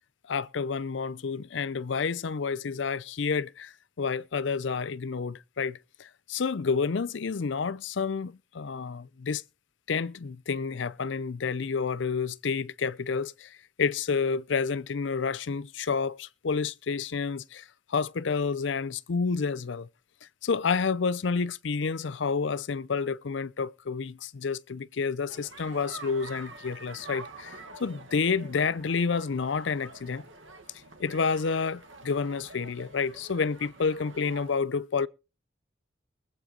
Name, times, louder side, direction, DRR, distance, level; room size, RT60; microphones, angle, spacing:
voice 1, 0.3-9.4 9.9-17.6 17.9-19.9 20.4-30.2 31.0-35.1, left 5 dB, 75° left, 0.5 m, -29 dB
sound 1, 25.3-34.5, right 3 dB, 90° right, 1.7 m, -47 dB
22.0 x 8.0 x 3.8 m
head